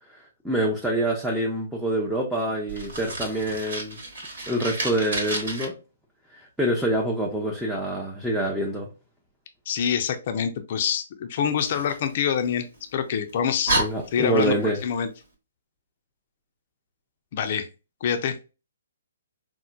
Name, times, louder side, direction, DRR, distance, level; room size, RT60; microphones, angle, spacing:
voice 1, 0.1-4.0 4.5-5.7 6.3-8.9 13.8-14.8, right 1 dB, ahead, -4 dB, 0.5 m, -26 dB
Fire, 2.7-5.7 11.6-12.8 13.3-13.4 13.7-14.9, right 2 dB, 60° right, 1.1 m, -31 dB
voice 2, 9.7-12.7 12.9-13.8 14.1-14.6 14.8-15.1 17.3-17.7 18.0-18.4, left 8 dB, 45° left, 8 dB, 0.4 m, -25 dB
4.3 x 2.1 x 2.3 m, 0.31 s
figure-of-eight pair, 125°, 0 cm